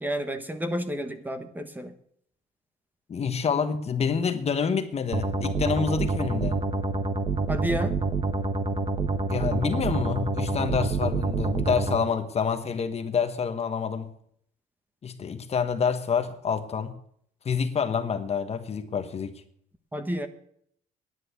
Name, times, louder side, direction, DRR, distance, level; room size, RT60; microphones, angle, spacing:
voice 1, 0.0-1.9 7.5-8.0 19.9-20.3, equal, 10° right, 1.3 m, -30 dB
voice 2, 3.1-6.6 9.3-14.1 15.0-16.9 17.4-19.3, left 6 dB, 40° left, 1.3 m, -27 dB
sound 1, 5.1-12.0, right 3 dB, 35° right, 1.2 m, -27 dB
10.5 x 9.4 x 8.1 m
cardioid pair, 110°, 17 cm